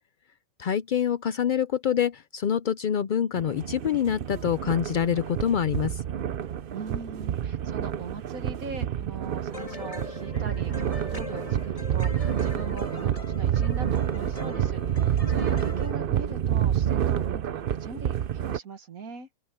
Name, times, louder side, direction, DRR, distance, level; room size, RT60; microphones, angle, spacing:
voice 1, 0.6-6.0, left 8 dB, 80° left, 0.4 m, -26 dB
sound 1, 3.4-18.6, right 10 dB, 55° right, 0.7 m, -28 dB
voice 2, 6.7-19.3, right 4 dB, 75° right, 2.0 m, -41 dB
sound 2, 9.5-16.0, left 3 dB, 25° left, 1.7 m, -40 dB
omnidirectional pair, 1.5 m